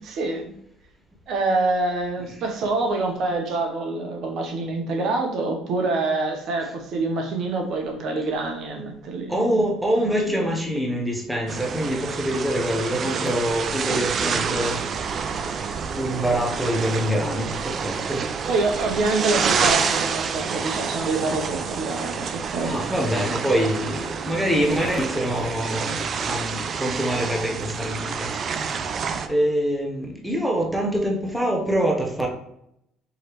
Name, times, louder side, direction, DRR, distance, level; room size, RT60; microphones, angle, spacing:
voice 1, 0.0-0.5 1.3-9.4 10.0-10.5 18.5-22.7, right 3 dB, 60° right, 3 dB, 0.8 m, -26 dB
voice 2, 9.3-15.5 15.9-18.3 22.6-28.8 29.3-32.3, equal, 5° right, 1 dB, 0.7 m, -25 dB
sound 1, 11.5-29.3, right 6 dB, 40° right, 0.4 m, -28 dB
4.8 x 3.1 x 3.0 m, 0.77 s
cardioid pair, 115°, 0 cm